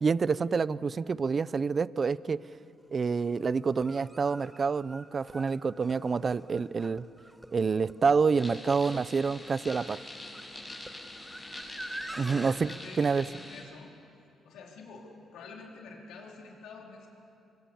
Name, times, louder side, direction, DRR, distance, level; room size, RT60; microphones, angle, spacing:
voice 1, 0.0-2.4 2.9-7.0 7.5-10.0 12.2-12.7 13.0-13.2, right 5 dB, 40° right, 19 dB, 0.5 m, -27 dB
sound 1, 2.5-2.6 3.6-12.5, right 1 dB, 5° right, 1.5 m, -45 dB
sound 2, 8.3-13.6, left 1 dB, 20° left, 7.0 m, -45 dB
voice 2, 12.1-13.9 14.4-17.1, left 4 dB, 85° left, 0 dB, 4.2 m, -48 dB
25.5 x 24.5 x 7.2 m, 2.7 s
cardioid pair, 90°, 0 cm